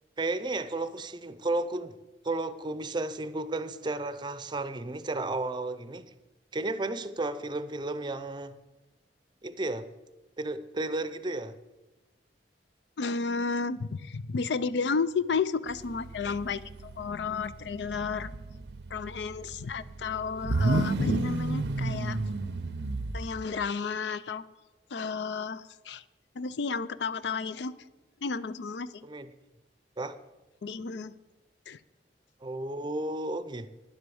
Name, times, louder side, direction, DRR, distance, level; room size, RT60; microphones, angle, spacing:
voice 1, 0.2-1.9 2.2-6.1 6.5-8.5 9.4-9.9 10.4-11.5 29.0-29.3 30.0-30.2 32.4-33.7, right 2 dB, 25° right, 13 dB, 0.5 m, -33 dB
voice 2, 13.0-18.3 18.9-22.2 23.1-24.4 24.9-26.0 26.4-27.7 28.2-29.1 30.6-31.1 31.7-31.8, left 5 dB, 80° left, 16 dB, 0.5 m, -32 dB
sound 1, 15.7-23.5, right 2 dB, 75° right, 0.6 m, -32 dB
10.5 x 7.9 x 7.0 m, 1.1 s
head